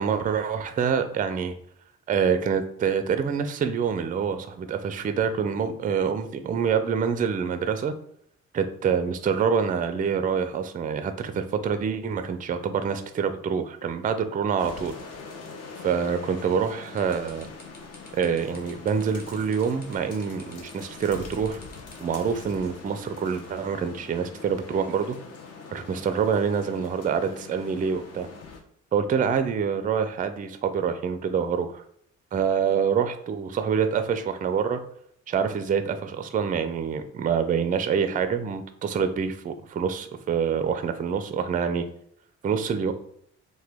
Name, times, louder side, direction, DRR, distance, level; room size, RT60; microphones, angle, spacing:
voice 1, 0.0-1.5 2.1-7.9 8.5-14.9 15.8-17.5 18.1-21.6 22.0-25.2 25.7-28.3 28.9-31.8 32.3-34.8 35.3-41.8 42.4-42.9, right 6 dB, 30° right, 9 dB, 0.3 m, -26 dB
sound 1, 14.6-28.6, left 4 dB, 55° left, 0.7 m, -43 dB
sound 2, 17.0-22.2, left 1 dB, 30° left, 1.0 m, -50 dB
2.8 x 2.2 x 3.4 m, 0.68 s
cardioid pair, 90°, 30 cm